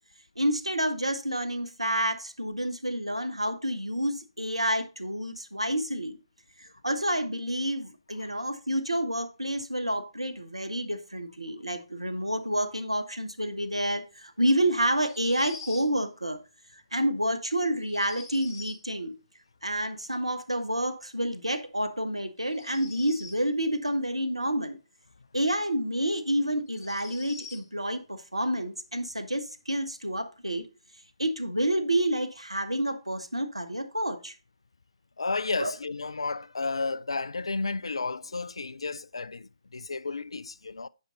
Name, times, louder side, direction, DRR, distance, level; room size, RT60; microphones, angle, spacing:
voice 1, 0.4-6.2 6.6-16.4 16.7-19.1 19.6-24.8 25.3-30.7 31.2-34.3 35.6-35.7, right 1 dB, 85° right, 1.3 m, -29 dB
sound 1, 15.0-15.9 17.8-18.8 22.4-23.5 25.6-25.7 26.7-27.7, left 4 dB, 40° left, 1.6 m, -45 dB
voice 2, 35.2-40.9, left 3 dB, 70° left, 0.4 m, -32 dB
9.5 x 5.3 x 3.9 m
figure-of-eight pair, 135°, 3 cm